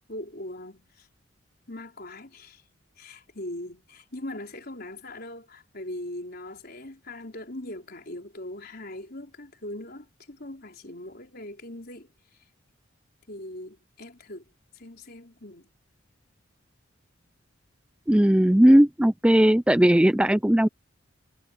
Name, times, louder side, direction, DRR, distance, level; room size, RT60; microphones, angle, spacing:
voice 1, 0.1-1.1 1.7-2.6 3.0-12.1 13.3-15.7, left 1 dB, 50° left, 4.6 m, -40 dB
voice 2, 18.1-20.7, right 1 dB, 5° right, 0.4 m, -18 dB
head